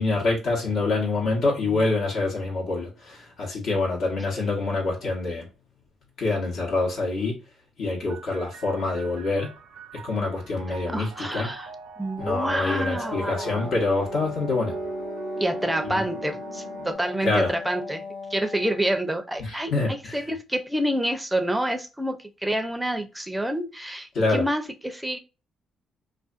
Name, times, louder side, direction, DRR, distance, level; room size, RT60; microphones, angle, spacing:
voice 1, 0.0-5.5 6.2-7.3 7.8-9.5 9.9-11.5 12.2-14.7 15.9-16.0 17.2-17.5 19.4-20.2 24.1-24.4, left 3 dB, 70° left, 1.0 m, -26 dB
voice 2, 4.3-4.8 10.9-11.7 12.0-13.8 15.4-18.0 18.3-25.2, right 1 dB, 5° right, 0.4 m, -28 dB
sound 1, 8.1-16.9, right 5 dB, 85° right, 0.5 m, -39 dB
Wind instrument woodwind instrument, 12.2-18.9, left 4 dB, 50° left, 0.7 m, -38 dB
2.4 x 2.3 x 2.4 m
cardioid pair, 90°, 0 cm